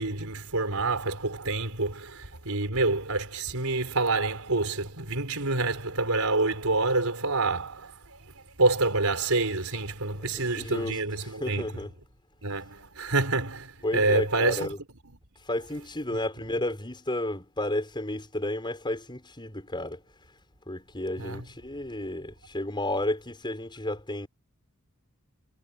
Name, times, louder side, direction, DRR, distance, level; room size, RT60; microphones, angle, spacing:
voice 1, 0.0-11.8 12.4-14.7 16.1-16.2 21.2-21.5, right 3 dB, 70° right, 4.6 m, -27 dB
voice 2, 10.5-10.9 11.4-11.9 13.8-14.8 15.5-20.0 20.7-24.3, left 1 dB, 20° left, 6.5 m, -32 dB
head